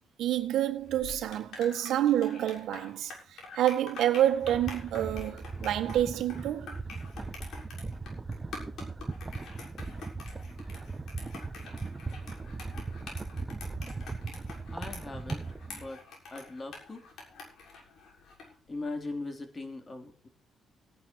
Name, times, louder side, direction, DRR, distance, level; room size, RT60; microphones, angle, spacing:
voice 1, 0.2-6.7, right 11 dB, 80° right, 1.7 m, -28 dB
sound 1, 0.8-18.6, left 4 dB, 70° left, 6.8 m, -47 dB
sound 2, 4.3-15.9, right 3 dB, 25° right, 1.4 m, -39 dB
voice 2, 14.7-16.0 16.3-17.0 18.7-20.3, left 2 dB, 30° left, 3.7 m, -40 dB
16.0 x 10.5 x 4.7 m
cardioid pair, 90°, 0 cm